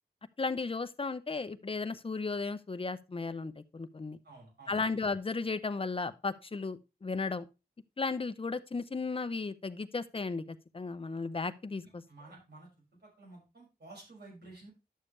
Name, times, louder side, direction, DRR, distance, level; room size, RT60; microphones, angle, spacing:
voice 1, 0.4-4.2 4.7-7.5 8.0-12.0, left 4 dB, 35° left, 0.7 m, -35 dB
voice 2, 4.2-4.8 11.8-12.7 13.0-14.7, right 2 dB, 85° right, 5.7 m, -52 dB
11.0 x 7.0 x 3.2 m
wide cardioid pair, 85°, 16 cm